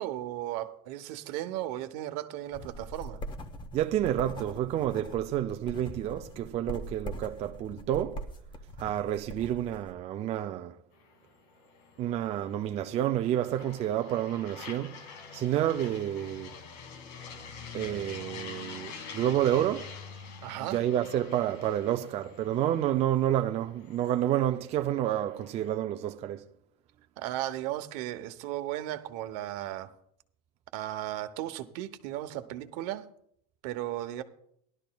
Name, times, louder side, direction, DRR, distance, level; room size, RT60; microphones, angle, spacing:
voice 1, 0.0-3.2 20.4-20.8 27.2-29.9 30.7-33.1 33.6-34.2, right 14 dB, 70° right, 0.9 m, -35 dB
sound 1, 2.5-9.9, equal, 20° left, 0.9 m, -42 dB
voice 2, 3.7-8.2 8.8-10.7 12.0-15.0 15.3-16.5 17.7-19.9 20.7-26.5, right 11 dB, 30° right, 0.4 m, -29 dB
sound 2, 10.9-25.8, left 6 dB, 80° left, 1.7 m, -47 dB
17.5 x 12.0 x 2.3 m
cardioid pair, 145°, 21 cm